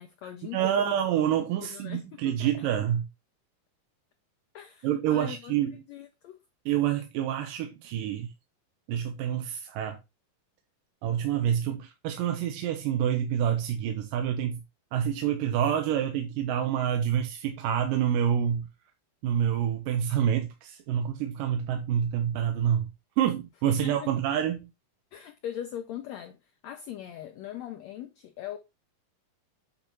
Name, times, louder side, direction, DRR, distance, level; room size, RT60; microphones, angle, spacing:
voice 1, 0.0-0.9 1.6-2.7 4.5-5.5 5.9-6.4 23.8-24.1 25.1-26.4 26.6-28.6, left 11 dB, 85° left, 1.5 m, -40 dB
voice 2, 0.5-3.1 4.8-5.8 6.7-8.3 8.9-10.0 11.0-14.6 14.9-18.7 19.2-22.9 23.2-24.7, right 9 dB, 80° right, 2.4 m, -27 dB
8.6 x 4.4 x 3.9 m
omnidirectional pair, 4.0 m